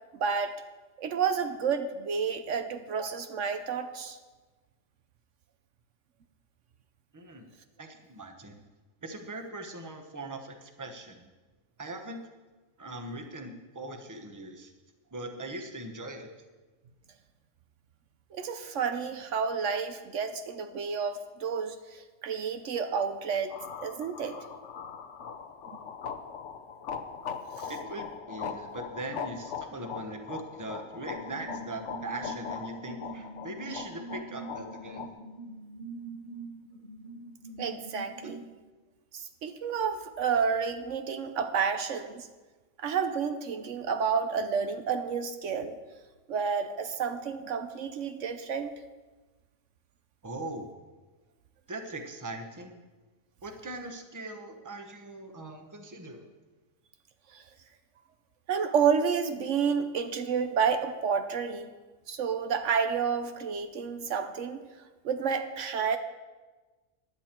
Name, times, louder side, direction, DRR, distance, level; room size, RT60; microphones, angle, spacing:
voice 1, 0.1-0.5 1.0-4.2 18.3-23.5 23.8-24.4 27.6-27.7 37.6-38.5 39.1-42.3 42.8-45.8 46.3-48.7 57.3-57.4 58.5-61.7 62.1-64.6 65.0-66.0, right 6 dB, 70° right, 8 dB, 1.1 m, -30 dB
voice 2, 7.1-7.5 7.8-8.6 9.0-11.3 11.8-12.2 12.8-14.7 15.1-16.3 27.7-35.1 38.2-38.3 50.2-50.7 51.7-52.8 53.4-56.3, right 2 dB, 15° right, 5 dB, 1.0 m, -40 dB
sound 1, 23.5-35.1, left 6 dB, 70° left, 1.1 m, -40 dB
sound 2, 31.1-38.4, right 2 dB, 40° left, 1.5 m, -44 dB
15.0 x 10.5 x 4.5 m, 1.3 s
omnidirectional pair, 1.3 m